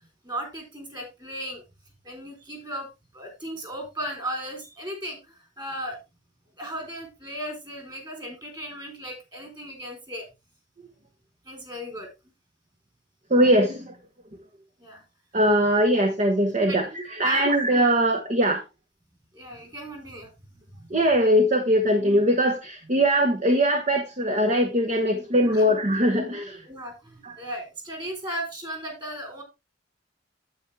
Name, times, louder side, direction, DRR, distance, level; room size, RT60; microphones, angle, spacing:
voice 1, 0.2-1.6 2.0-2.9 3.1-6.0 6.6-10.3 11.4-12.1 14.8-15.0 16.7-17.5 19.3-20.3 20.7-20.9 25.4-25.6 26.6-29.4, equal, 25° right, 4 dB, 3.8 m, -36 dB
voice 2, 13.3-14.0 15.3-18.6 20.9-26.6 27.2-27.3, equal, 40° right, 4 dB, 1.1 m, -21 dB
9.2 x 8.3 x 3.3 m, 0.25 s
head